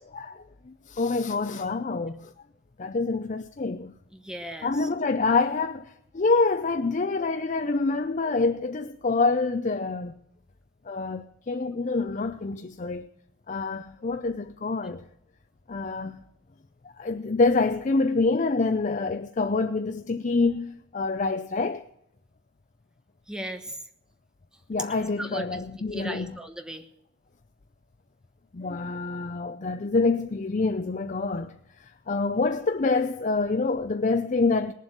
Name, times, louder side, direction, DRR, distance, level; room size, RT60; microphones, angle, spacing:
voice 1, 0.1-2.3 2.8-3.9 4.6-10.1 10.9-13.1 13.5-15.0 15.7-16.2 16.8-21.9 24.7-26.4 28.5-34.7, left 3 dB, 40° left, 0.5 m, -26 dB
voice 2, 4.1-4.9 23.3-23.8 24.9-25.6 25.9-26.8, right 1 dB, 5° right, 1.1 m, -37 dB
19.0 x 7.5 x 7.9 m
head